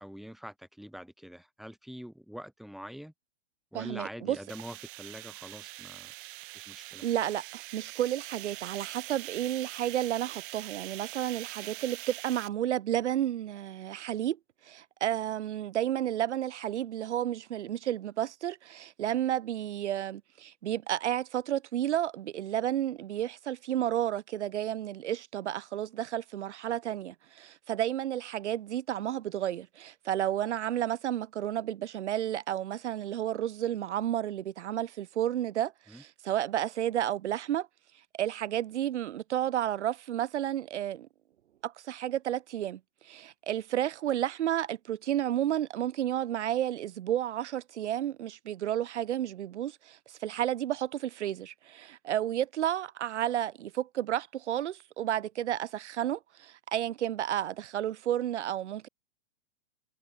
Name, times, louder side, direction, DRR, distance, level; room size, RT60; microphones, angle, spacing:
voice 1, 0.0-3.1 3.7-6.1 6.5-7.1 35.9-36.0, equal, ahead, 2.4 m, -45 dB
voice 2, 3.7-4.4 7.0-14.4 14.6-37.7 38.1-41.1 41.6-58.9, right 11 dB, 85° right, 0.6 m, -31 dB
sound 1, 4.5-12.5, right 23 dB, 50° right, 0.9 m, -44 dB
hypercardioid pair, 115°, 34 cm